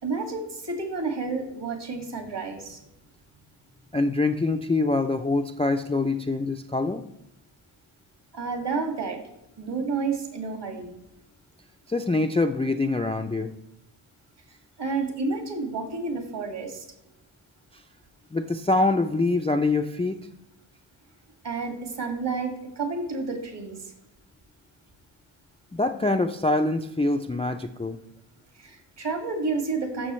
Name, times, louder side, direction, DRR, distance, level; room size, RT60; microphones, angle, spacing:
voice 1, 0.0-2.8 8.3-9.2 9.6-10.9 14.8-16.8 21.4-23.9 28.6-30.1, right 4 dB, 60° right, 4 dB, 2.2 m, -30 dB
voice 2, 3.9-7.0 11.9-13.5 18.3-20.2 25.7-28.0, left 2 dB, 15° left, 6 dB, 0.3 m, -24 dB
14.0 x 6.1 x 3.1 m, 0.87 s
wide cardioid pair, 95°, 48 cm